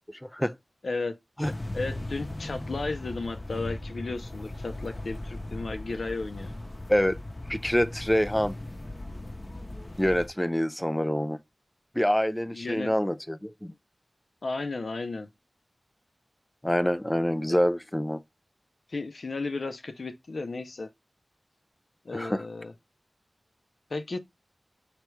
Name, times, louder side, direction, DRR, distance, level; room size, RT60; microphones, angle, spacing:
voice 1, 0.1-0.6 1.4-1.5 6.9-7.2 7.5-8.5 10.0-11.4 12.0-13.7 16.6-18.2 22.1-22.5, equal, 10° left, 0.3 m, -26 dB
voice 2, 0.8-1.1 1.7-6.5 12.5-12.9 14.4-15.3 17.5-17.6 18.9-20.9 22.0-22.7 23.9-24.2, left 3 dB, 70° left, 0.6 m, -34 dB
sound 1, 1.4-10.3, left 1 dB, 30° left, 0.8 m, -38 dB
3.2 x 2.9 x 4.6 m
wide cardioid pair, 60°, 0 cm